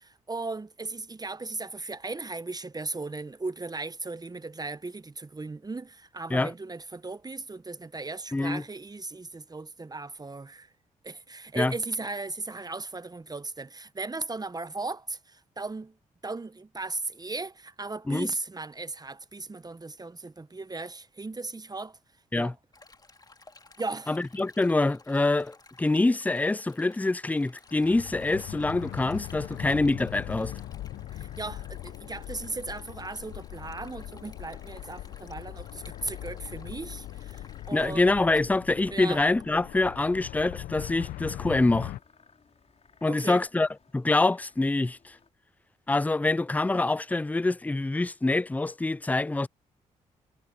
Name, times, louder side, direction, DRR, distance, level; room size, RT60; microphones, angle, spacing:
voice 1, 0.0-10.7 11.0-15.9 16.2-22.0 22.3-22.5 23.8-24.1 31.1-38.0 38.9-39.2 43.1-43.4, right 3 dB, 25° right, 1.1 m, -37 dB
voice 2, 8.3-8.6 11.6-11.7 18.1-18.3 22.3-22.5 24.1-30.5 37.7-41.9 43.0-45.2 45.9-49.5, left 2 dB, 10° left, 0.4 m, -25 dB
Stream, 22.7-38.0, left 3 dB, 25° left, 2.5 m, -56 dB
sound 1, 27.7-42.0, left 14 dB, 80° left, 0.9 m, -40 dB
sound 2, 27.8-45.3, left 5 dB, 45° left, 5.0 m, -57 dB
supercardioid pair, 50°, 15 cm